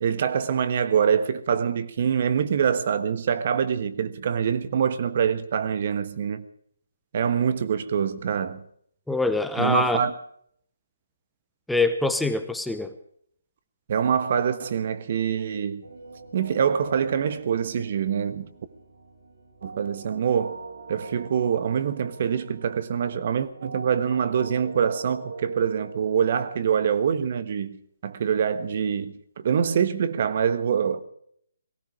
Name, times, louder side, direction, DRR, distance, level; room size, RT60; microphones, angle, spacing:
voice 1, 0.0-6.4 7.1-8.6 9.6-10.1 13.9-15.8 16.3-18.5 19.6-20.6 20.9-27.8 28.0-29.1 29.4-31.0, right 7 dB, 45° right, 1.3 m, -25 dB
voice 2, 9.1-10.0 11.7-12.9, left 2 dB, ahead, 0.8 m, -24 dB
sound 1, 15.8-26.8, right 3 dB, 65° right, 2.5 m, -42 dB
18.0 x 16.0 x 4.9 m
figure-of-eight pair, 150°, 0 cm